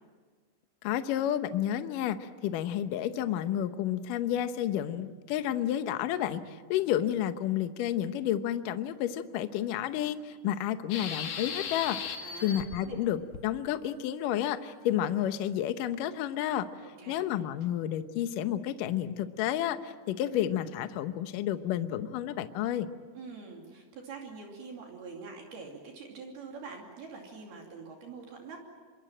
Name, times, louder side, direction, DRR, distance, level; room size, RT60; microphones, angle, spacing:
voice 1, 0.8-12.0 12.4-16.7 17.1-22.9, left 11 dB, 80° left, 10 dB, 1.9 m, -31 dB
sound 1, 10.9-12.8 13.3-13.4, left 6 dB, 55° left, 2.8 m, -36 dB
voice 2, 12.2-13.1 16.8-17.2 23.1-28.6, right 4 dB, 60° right, 1 dB, 4.5 m, -45 dB
26.5 x 23.5 x 8.9 m, 1.5 s
omnidirectional pair, 5.2 m